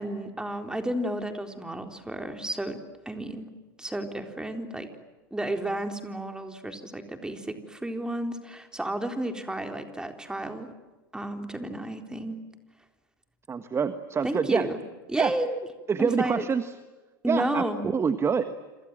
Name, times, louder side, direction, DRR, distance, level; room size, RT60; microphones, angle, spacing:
voice 1, 0.0-2.8 3.1-3.5 3.8-4.9 5.3-10.7 11.1-12.4 14.2-14.8 15.1-15.6 16.0-16.5 17.2-17.9, right 1 dB, 5° right, 6 dB, 3.9 m, -32 dB
voice 2, 13.5-14.7 15.2-15.3 15.9-16.7 17.3-17.6 17.9-18.5, right 6 dB, 20° right, 11 dB, 1.5 m, -26 dB
29.0 x 27.0 x 7.7 m, 1.2 s
hypercardioid pair, 85°, 12 cm